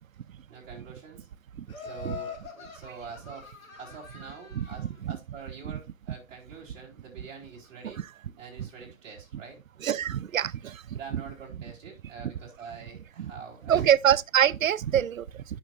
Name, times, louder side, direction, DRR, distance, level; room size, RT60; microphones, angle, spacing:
voice 1, 0.5-1.3 1.8-3.5 3.8-8.0 8.4-9.6 10.9-13.9, right 5 dB, 15° right, 3.7 m, -45 dB
Laughter, 1.7-4.9, left 6 dB, 90° left, 3.9 m, -43 dB
voice 2, 4.5-5.2 5.6-5.7 7.8-7.9 8.6-8.7 9.8-11.2 12.2-12.3 13.2-13.3 13.7-15.4, right 9 dB, 75° right, 0.7 m, -26 dB
15.5 x 6.4 x 2.5 m
hypercardioid pair, 165°, 40 cm